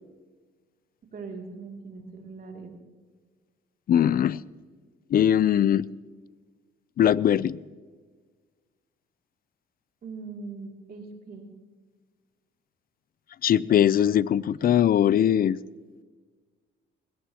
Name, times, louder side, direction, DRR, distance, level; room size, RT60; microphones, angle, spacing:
voice 1, 1.1-2.7 10.0-11.5, right 4 dB, 50° right, 1 dB, 2.7 m, -40 dB
voice 2, 3.9-4.4 5.1-5.9 7.0-7.6 13.4-15.6, left 10 dB, 50° left, 21 dB, 0.4 m, -21 dB
20.0 x 17.0 x 2.9 m, 1.5 s
cardioid pair, 90°, 20 cm